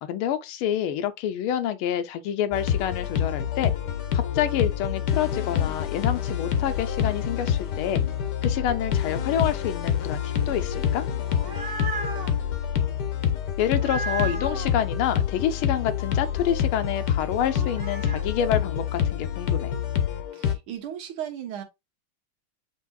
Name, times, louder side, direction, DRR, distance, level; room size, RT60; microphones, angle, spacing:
voice 1, 0.0-3.7 4.1-8.0 8.4-11.1 13.6-19.7, left 10 dB, 85° left, 1.5 m, -28 dB
sound 1, 2.5-20.5, left 8 dB, 65° left, 1.1 m, -27 dB
sound 2, 11.2-12.3 13.7-14.7 17.5-18.2, right 5 dB, 60° right, 0.6 m, -34 dB
voice 2, 20.3-21.6, right 10 dB, 80° right, 1.9 m, -35 dB
8.2 x 2.8 x 2.3 m
omnidirectional pair, 2.3 m